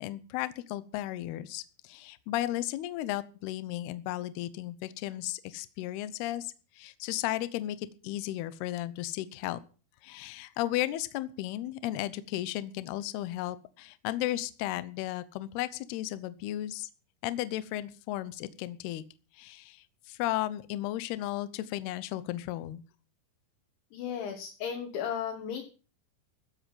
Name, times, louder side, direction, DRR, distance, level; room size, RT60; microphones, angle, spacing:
voice 1, 0.0-9.6 10.0-16.9 17.2-19.0 19.3-22.8, left 15 dB, 90° left, 15 dB, 2.2 m, -34 dB
voice 2, 23.9-25.6, left 8 dB, 70° left, 2 dB, 3.9 m, -35 dB
15.0 x 8.2 x 7.4 m, 0.37 s
omnidirectional pair, 5.9 m